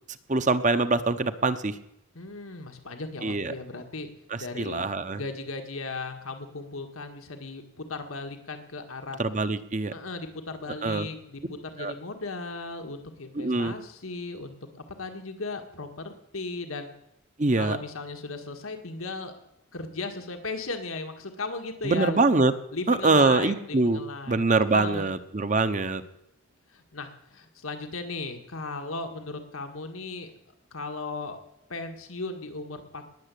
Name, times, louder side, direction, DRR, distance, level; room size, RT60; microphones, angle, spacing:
voice 1, 0.3-1.7 3.2-3.5 4.3-5.2 9.2-9.9 10.8-11.1 11.8-11.9 13.3-13.7 17.4-17.8 21.8-22.5 22.9-24.0 24.3-26.0, right 3 dB, 35° right, 11 dB, 0.9 m, -24 dB
voice 2, 2.2-4.1 4.4-4.8 5.2-9.2 9.9-16.9 17.6-19.3 19.7-22.2 22.7-25.2 26.7-30.3 30.7-31.4 31.7-33.2, left 3 dB, 90° left, 6 dB, 1.7 m, -36 dB
20.0 x 7.3 x 8.4 m, 0.80 s
head